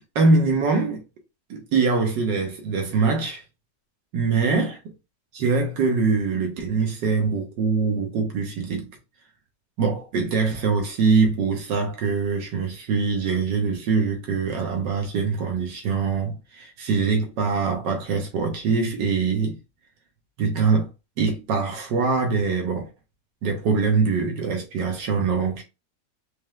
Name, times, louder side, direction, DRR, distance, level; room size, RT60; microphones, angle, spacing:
voice 1, 0.1-1.0 1.5-3.4 4.1-4.8 5.3-8.9 9.8-19.6 20.4-20.9 21.2-22.9 23.4-25.6, right 4 dB, 85° right, 1.6 m, -23 dB
4.3 x 3.3 x 2.3 m
omnidirectional pair, 1.9 m